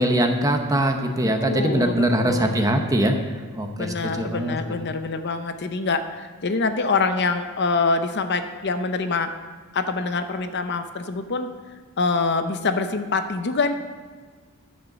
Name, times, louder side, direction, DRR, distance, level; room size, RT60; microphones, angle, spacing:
voice 1, 0.0-3.2 3.5-4.6, right 1 dB, 15° right, 4 dB, 0.8 m, -22 dB
voice 2, 1.4-2.6 3.8-9.3 9.7-11.5 12.0-13.7, left 4 dB, 50° left, 8 dB, 0.6 m, -25 dB
11.0 x 6.6 x 6.7 m, 1.5 s
head